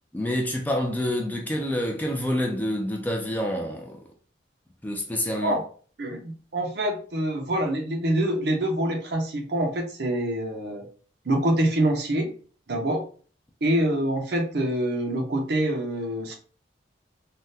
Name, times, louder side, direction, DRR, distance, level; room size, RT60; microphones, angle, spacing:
voice 1, 0.1-4.1 4.8-5.6, left 1 dB, 10° left, 0.3 m, -27 dB
voice 2, 6.0-10.9 11.2-12.3 12.7-13.0 13.6-16.3, right 1 dB, 55° right, 0.6 m, -25 dB
3.4 x 2.1 x 2.7 m
head